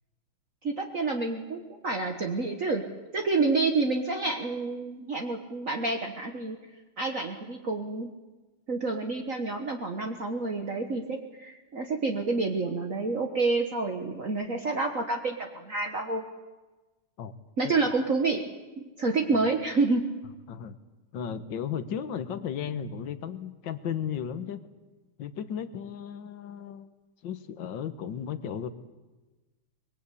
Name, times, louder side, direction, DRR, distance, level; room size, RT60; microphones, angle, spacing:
voice 1, 0.6-2.9 3.1-6.6 7.0-8.1 8.7-16.2 17.6-18.4 18.8-20.0, right 3 dB, 45° right, 3 dB, 1.7 m, -28 dB
voice 2, 21.1-24.6 25.2-26.9 27.2-28.7, left 8 dB, 65° left, 11 dB, 1.8 m, -35 dB
24.0 x 21.5 x 8.4 m, 1.2 s
omnidirectional pair, 2.2 m